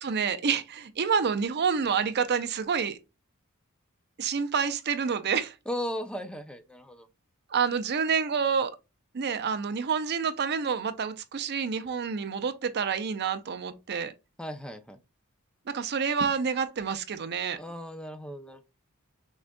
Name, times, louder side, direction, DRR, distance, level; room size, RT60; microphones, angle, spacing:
voice 1, 0.0-3.0 4.2-5.5 7.5-8.7 9.1-14.1 15.7-17.6, right 6 dB, 50° right, 0.5 m, -28 dB
voice 2, 5.7-7.1 14.4-15.0 17.6-18.6, equal, 5° left, 0.5 m, -36 dB
6.1 x 2.5 x 2.2 m
head